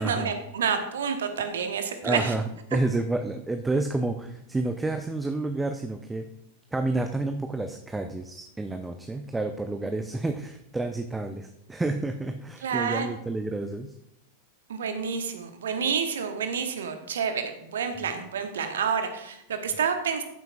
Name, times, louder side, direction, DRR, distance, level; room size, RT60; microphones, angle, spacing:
voice 1, 0.0-2.3 12.6-13.1 14.7-20.2, right 6 dB, 65° right, 7 dB, 1.2 m, -29 dB
voice 2, 2.0-2.4 2.7-6.3 6.7-13.9, right 2 dB, 10° right, 6 dB, 0.6 m, -29 dB
13.5 x 7.7 x 2.5 m, 0.81 s
figure-of-eight pair, 90°, 0 cm